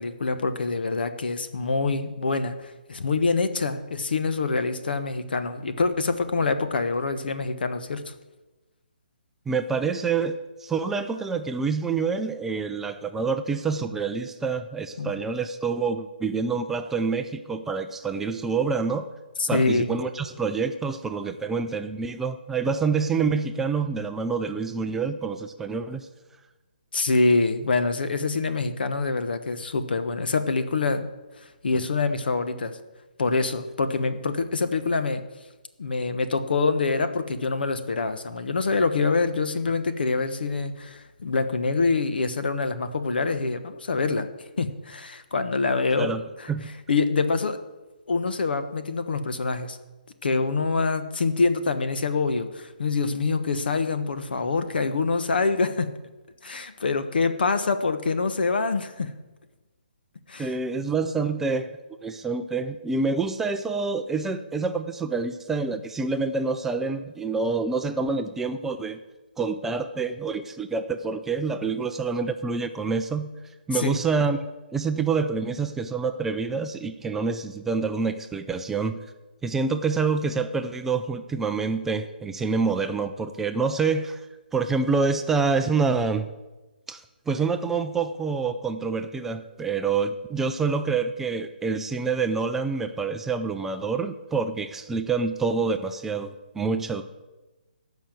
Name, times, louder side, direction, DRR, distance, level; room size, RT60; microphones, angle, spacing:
voice 1, 0.0-8.1 15.0-15.1 19.4-19.9 26.9-31.1 31.6-32.8 33.2-35.2 35.8-44.3 44.6-46.1 46.4-46.5 46.9-47.6 48.1-49.8 50.2-55.9 56.4-59.1 60.3-60.5 73.7-74.0, left 4 dB, 70° left, 10 dB, 1.2 m, -25 dB
voice 2, 9.5-19.1 19.5-26.1 46.0-46.2 46.5-46.7 60.4-61.7 62.0-69.0 69.4-73.3 73.7-74.4 74.7-79.0 79.4-84.3 84.5-86.3 86.9-97.0, right 4 dB, 5° right, 7 dB, 0.4 m, -27 dB
14.0 x 5.7 x 7.6 m, 1.1 s
hypercardioid pair, 155°, 5 cm